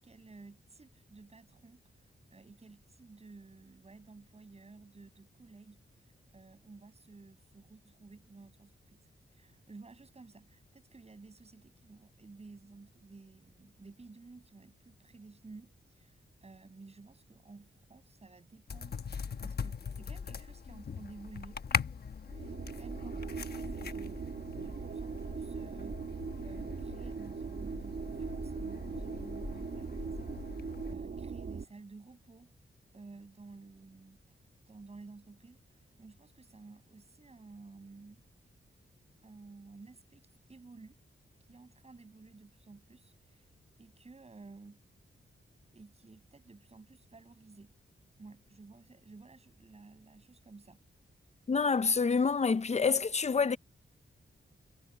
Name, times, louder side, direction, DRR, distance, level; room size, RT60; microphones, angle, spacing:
voice 1, 0.0-19.1 19.4-21.6 22.3-24.2 24.6-32.5 32.9-34.3 34.7-38.2 39.2-41.0 41.5-43.5 43.8-44.8 45.7-47.7 48.2-50.8, right 3 dB, 30° right, 8.0 m, -54 dB
sound 1, 18.7-30.9, left 6 dB, 50° left, 1.1 m, -41 dB
sound 2, 22.3-31.6, right 5 dB, 50° right, 1.2 m, -40 dB
voice 2, 51.5-53.6, left 5 dB, 35° left, 0.6 m, -27 dB
wide cardioid pair, 160°, 21 cm